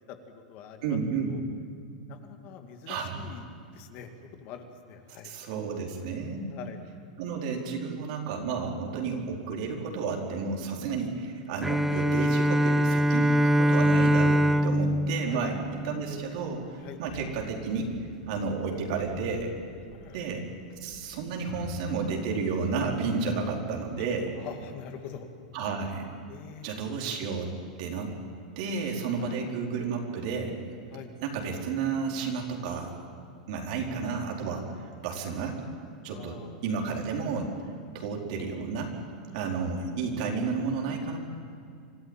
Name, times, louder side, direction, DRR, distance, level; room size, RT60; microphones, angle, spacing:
voice 1, 0.1-1.0 1.3-1.4 2.1-3.5 3.7-4.1 4.4-5.3 5.6-5.7 6.5-6.8 15.2-15.4 16.8-17.0 18.6-18.7 19.9-20.3 21.0-21.1 24.4-25.3 26.3-26.7 29.2-29.4 30.9-31.1 36.0-36.6 39.3-39.5, left 8 dB, 45° left, 5 dB, 2.3 m, -45 dB
voice 2, 0.8-1.3 2.9-3.3 5.2-6.5 7.2-15.6 15.8-17.9 18.3-19.5 20.1-20.4 20.8-24.3 25.5-26.1 26.6-27.5 27.8-28.1 28.6-30.6 31.2-32.9 33.5-34.7 35.0-35.6 36.0-37.5 37.9-38.9 39.3-41.2, right 5 dB, 60° right, 0 dB, 4.4 m, -31 dB
Bowed string instrument, 11.6-16.3, equal, 5° right, 0.6 m, -23 dB
sound 1, 15.5-25.3, left 5 dB, 65° left, 7.4 m, -48 dB
25.5 x 14.0 x 9.0 m, 2.4 s
supercardioid pair, 130°, 4 cm